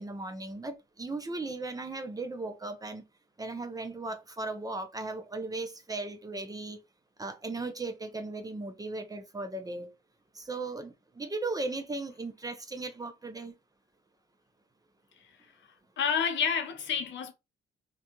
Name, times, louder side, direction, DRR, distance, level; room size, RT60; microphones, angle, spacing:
voice 1, 0.0-3.0 3.4-6.8 7.2-9.9 10.3-13.5, right 2 dB, 20° right, 0.5 m, -37 dB
voice 2, 16.0-17.3, left 7 dB, 65° left, 0.6 m, -29 dB
2.4 x 2.2 x 2.9 m
cardioid pair, 90°, 20 cm